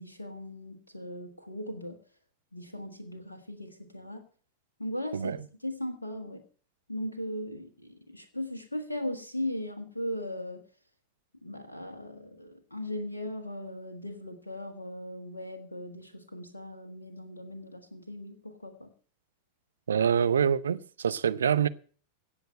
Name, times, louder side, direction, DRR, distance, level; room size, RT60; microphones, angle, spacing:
voice 1, 0.0-2.0 2.5-4.2 4.8-6.4 6.9-10.6 11.4-18.9, left 1 dB, 80° left, 1.5 m, -38 dB
voice 2, 19.9-21.7, right 7 dB, 70° right, 0.6 m, -25 dB
17.0 x 6.9 x 7.5 m
figure-of-eight pair, 90°, 0 cm